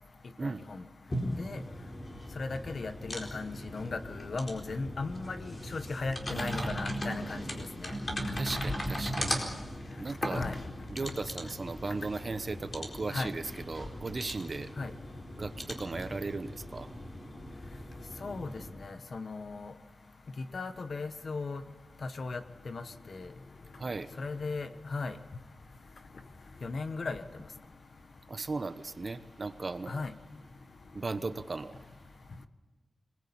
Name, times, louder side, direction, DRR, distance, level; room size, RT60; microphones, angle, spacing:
voice 1, 0.4-0.8 1.4-1.6 2.4-7.4 7.8-7.9 10.3-10.6 11.0-11.1 13.1-13.3 14.8-14.9 18.2-18.5 18.8-19.7 20.4-21.6 22.0-23.3 24.2-25.1 26.6-27.2 29.9-30.1, left 3 dB, 50° left, 10 dB, 1.2 m, -37 dB
sound 1, 1.1-18.7, equal, 30° left, 4.3 m, -38 dB
voice 2, 6.3-6.7 8.3-9.4 9.9-10.4 10.9-14.7 15.4-16.9 23.8-24.1 28.3-30.0 30.9-31.8, right 3 dB, 35° right, 11 dB, 1.0 m, -37 dB
26.0 x 20.0 x 8.7 m, 1.3 s
wide cardioid pair, 165°, 0 cm